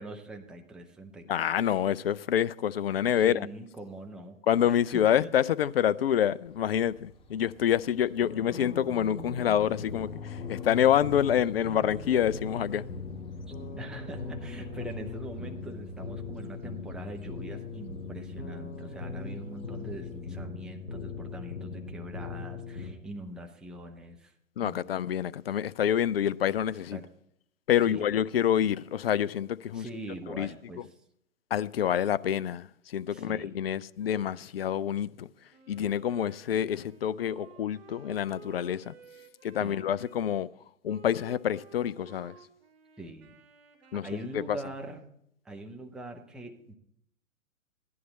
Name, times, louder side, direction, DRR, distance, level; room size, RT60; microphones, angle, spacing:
voice 1, 0.0-1.5 3.2-4.4 4.7-5.3 13.7-24.3 24.6-24.8 26.9-27.0 27.9-28.0 29.7-30.9 33.1-33.6 39.6-39.8 43.0-43.4 44.0-45.1 45.4-46.7, right 2 dB, ahead, 0.5 m, -43 dB
voice 2, 1.3-3.5 4.5-12.8 24.6-27.0 27.7-29.9 30.3-30.5 31.5-35.3 35.7-38.9 39.4-40.5 40.8-42.4 43.9-44.1 44.3-44.6, left 10 dB, 45° left, 0.5 m, -27 dB
sound 1, 6.4-20.2, left 3 dB, 15° left, 1.0 m, -50 dB
sound 2, 8.2-22.9, left 4 dB, 85° left, 2.6 m, -40 dB
Wind instrument woodwind instrument, 35.5-40.2 40.9-44.8, right 5 dB, 50° right, 2.1 m, -54 dB
15.5 x 11.0 x 4.0 m
figure-of-eight pair, 120°, 41 cm